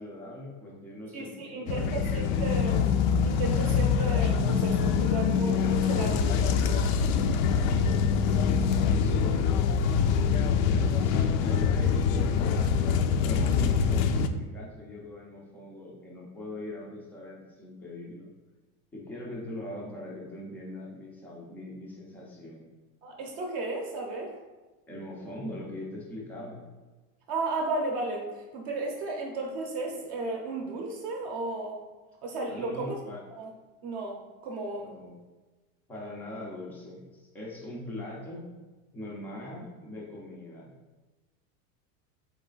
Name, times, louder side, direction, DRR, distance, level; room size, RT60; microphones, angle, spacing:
voice 1, 0.0-2.1 8.1-12.7 13.2-18.3 18.9-22.7 24.9-26.6 32.4-33.2 34.8-35.2 35.9-38.5 38.9-40.7, left 1 dB, 5° left, -3 dB, 0.3 m, -41 dB
voice 2, 1.1-2.8 3.2-7.0 23.0-24.3 27.3-31.8 32.2-33.0 33.3-33.5 33.8-34.9, right 2 dB, 40° right, 1 dB, 0.6 m, -34 dB
sound 1, 1.7-14.3, left 6 dB, 65° left, 0.5 m, -24 dB
4.0 x 3.1 x 3.8 m, 1.2 s
supercardioid pair, 150°, 44 cm